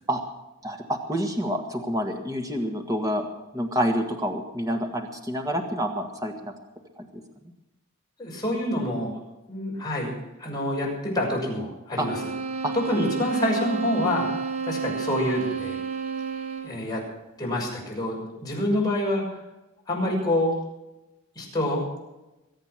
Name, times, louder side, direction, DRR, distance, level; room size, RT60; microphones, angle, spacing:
voice 1, 0.6-3.3 3.5-6.5 7.0-7.1 12.0-12.1 12.6-13.0, equal, 15° right, 3 dB, 1.8 m, -28 dB
voice 2, 8.2-9.2 9.5-10.1 10.4-12.2 12.8-14.3 14.6-15.8 16.6-17.0 17.4-19.4 19.9-20.5 21.3-21.8, left 1 dB, 20° left, -3 dB, 6.5 m, -27 dB
sound 1, 12.0-16.9, right 5 dB, 85° right, 1.5 m, -31 dB
23.5 x 8.7 x 6.1 m, 0.99 s
head